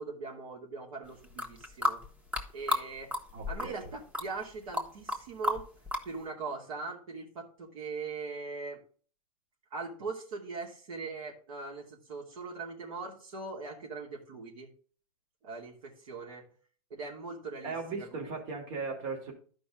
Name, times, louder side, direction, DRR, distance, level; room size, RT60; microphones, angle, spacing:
voice 1, 0.0-2.0 2.5-3.1 3.5-5.6 6.0-8.8 9.7-14.7 15.4-16.4 16.9-18.3, right 4 dB, 75° right, -2 dB, 2.8 m, -41 dB
sound 1, 1.2-2.8 3.1-3.9 4.1-5.2 5.4-6.1, left 1 dB, 5° right, 1.1 m, -32 dB
voice 2, 3.3-3.9 17.6-19.3, right 4 dB, 55° right, 1 dB, 2.9 m, -37 dB
12.0 x 5.2 x 3.8 m, 0.43 s
hypercardioid pair, 130°, 19 cm